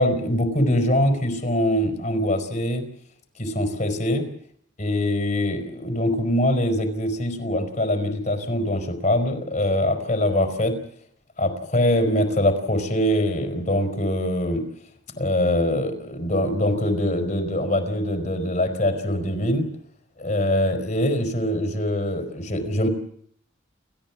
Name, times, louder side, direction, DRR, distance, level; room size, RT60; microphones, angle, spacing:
voice 1, 0.0-2.8 3.4-4.2 4.8-10.8 11.4-14.6 15.2-19.7 20.2-22.9, left 1 dB, 40° left, 7 dB, 4.8 m, -23 dB
30.0 x 14.0 x 7.3 m, 0.63 s
head